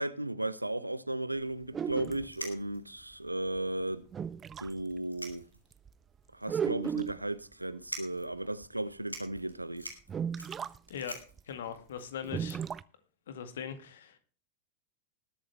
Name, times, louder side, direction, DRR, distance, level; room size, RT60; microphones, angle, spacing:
voice 1, 0.0-4.0 4.6-5.4 6.3-9.9, right 1 dB, 85° right, 0.8 m, -35 dB
sound 1, 1.7-2.3 3.6-3.7 4.1-4.7 5.3-5.4 5.7-5.9 6.5-7.3 8.6-8.7 9.4-9.5 10.1-10.8 11.0-11.1 11.4-11.5 12.2-12.8, right 7 dB, 20° right, 0.5 m, -35 dB
sound 2, 1.8-1.9 2.3-3.0 3.6-3.7 4.0-4.1 4.9-5.8 6.2-6.3 7.0-7.3 7.8-8.3 8.7-8.8 9.0-12.7, equal, 90° left, 3.1 m, -45 dB
voice 2, 11.5-12.6 13.3-14.2, left 8 dB, 60° left, 2.0 m, -40 dB
20.0 x 8.6 x 3.3 m
figure-of-eight pair, 90°, 0 cm